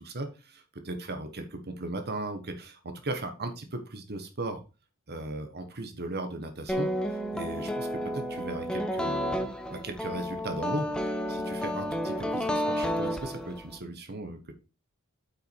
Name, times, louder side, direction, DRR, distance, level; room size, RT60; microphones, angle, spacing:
voice 1, 0.0-4.6 5.1-14.5, right 2 dB, 50° right, 7 dB, 1.3 m, -37 dB
sound 1, 6.7-13.8, equal, 5° left, 0.9 m, -31 dB
8.4 x 6.0 x 4.6 m, 0.32 s
head